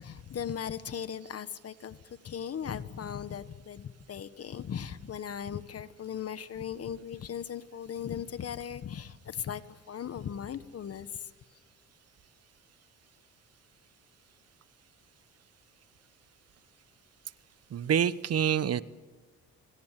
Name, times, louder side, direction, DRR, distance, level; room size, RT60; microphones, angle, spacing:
voice 1, 0.0-2.0 2.2-11.3, left 8 dB, 50° left, 13 dB, 1.5 m, -38 dB
voice 2, 17.7-18.8, right 8 dB, 55° right, 16 dB, 1.1 m, -26 dB
25.5 x 24.5 x 7.6 m, 1.4 s
cardioid pair, 90°, 30 cm